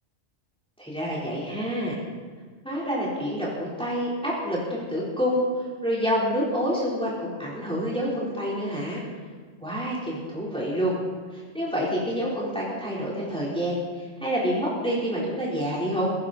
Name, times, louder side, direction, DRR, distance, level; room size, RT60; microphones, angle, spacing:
voice 1, 0.8-2.0 2.6-9.0 9.6-11.0 11.3-16.1, equal, 5° left, -7 dB, 4.1 m, -28 dB
18.0 x 16.5 x 4.3 m, 1.5 s
omnidirectional pair, 1.3 m